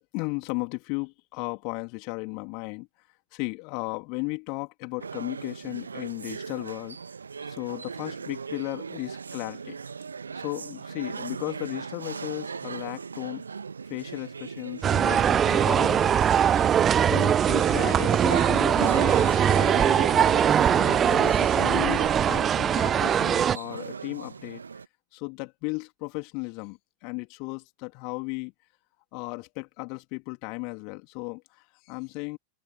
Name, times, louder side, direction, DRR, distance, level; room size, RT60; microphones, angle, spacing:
voice 1, 0.1-2.9 3.3-7.0 7.4-9.8 10.3-13.4 13.9-16.7 17.0-20.0 20.7-24.6 25.1-28.5 29.1-32.4, left 33 dB, 45° left, 3.0 m, -35 dB
sound 1, 5.0-24.9, right 5 dB, 75° right, 1.3 m, -38 dB
sound 2, 14.8-23.6, right 9 dB, 25° right, 0.7 m, -21 dB
figure-of-eight pair, 90°, 0 cm